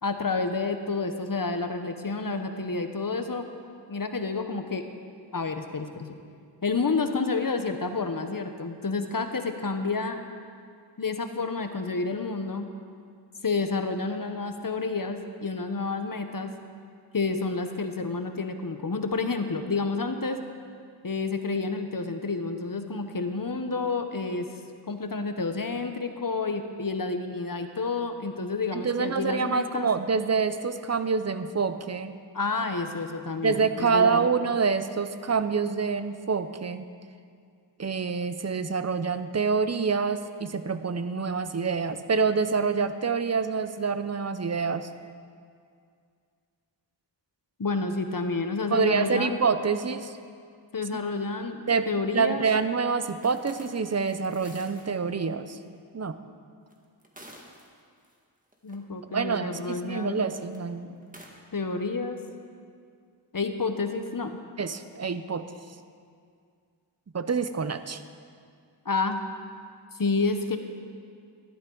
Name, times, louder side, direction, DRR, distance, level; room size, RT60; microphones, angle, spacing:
voice 1, 0.0-3.4 3.9-4.9 5.3-6.2 6.6-10.2 11.0-12.7 13.4-16.5 17.1-20.4 21.0-24.5 24.9-29.9 32.3-34.3 47.6-49.4 50.7-52.5 58.6-60.2 61.5-62.2 63.3-64.4 68.8-69.2 70.0-70.6, left 3 dB, 50° left, 7 dB, 0.9 m, -29 dB
voice 2, 28.7-32.1 33.4-36.9 37.8-44.9 48.7-50.2 51.7-55.6 55.9-56.2 59.1-61.1 64.6-65.4 67.1-68.0, right 5 dB, 35° right, 11 dB, 0.6 m, -27 dB
sound 1, 53.2-55.0 55.5-55.6 56.7-58.1 58.5-58.8 60.2-60.6 61.0-61.3, right 1 dB, 20° right, 1.6 m, -50 dB
14.0 x 12.0 x 3.9 m, 2.2 s
wide cardioid pair, 55°, 44 cm